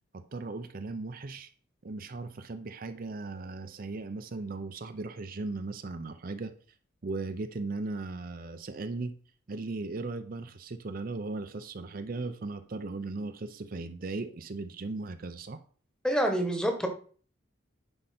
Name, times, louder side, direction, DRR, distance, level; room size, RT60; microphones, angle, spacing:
voice 1, 0.1-1.5 1.8-6.5 7.0-9.1 9.5-15.6, right 3 dB, 45° right, 9 dB, 0.5 m, -37 dB
voice 2, 16.0-16.9, right 1 dB, 5° left, 5 dB, 1.2 m, -27 dB
9.9 x 5.6 x 4.2 m, 0.43 s
head